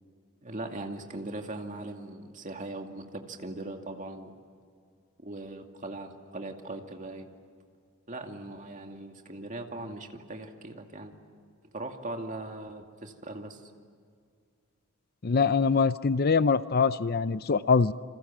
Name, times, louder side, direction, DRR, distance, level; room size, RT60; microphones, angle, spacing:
voice 1, 0.4-4.3 5.2-7.3 8.1-11.2 11.7-13.7, right 2 dB, 35° right, 4 dB, 2.4 m, -40 dB
voice 2, 15.2-17.9, left 5 dB, 45° left, 14 dB, 0.6 m, -23 dB
29.0 x 27.0 x 7.5 m, 2.2 s
head